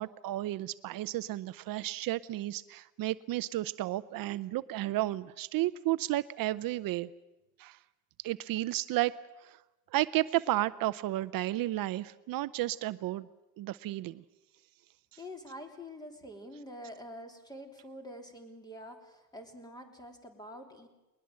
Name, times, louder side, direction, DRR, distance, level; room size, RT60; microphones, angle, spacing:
voice 1, 0.0-7.1 7.6-7.8 8.2-9.2 9.4-9.6 9.9-13.3 13.6-14.2, right 16 dB, 60° right, 15 dB, 0.7 m, -32 dB
voice 2, 15.2-20.9, equal, 10° left, 4 dB, 3.2 m, -46 dB
21.0 x 21.0 x 7.6 m, 1.0 s
cardioid pair, 145°, 38 cm